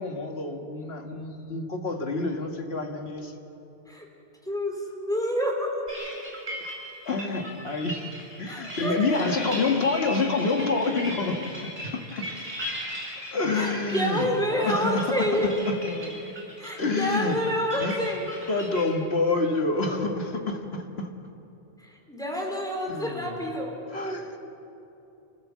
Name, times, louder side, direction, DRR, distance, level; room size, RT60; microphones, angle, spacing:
voice 1, 0.0-3.3 7.1-8.1 8.4-11.4 11.8-12.3 13.3-16.4 16.8-17.4 17.8-18.0 18.5-21.1 22.9-23.4 23.9-24.4, left 3 dB, 75° left, 4 dB, 2.0 m, -28 dB
voice 2, 4.5-5.8 8.5-9.2 13.5-15.6 16.6-18.3 21.8-23.7, equal, 5° left, 0 dB, 3.5 m, -28 dB
sound 1, 5.9-18.9, equal, 40° right, 5.9 m, -38 dB
27.0 x 15.5 x 7.4 m, 2.9 s
omnidirectional pair, 1.1 m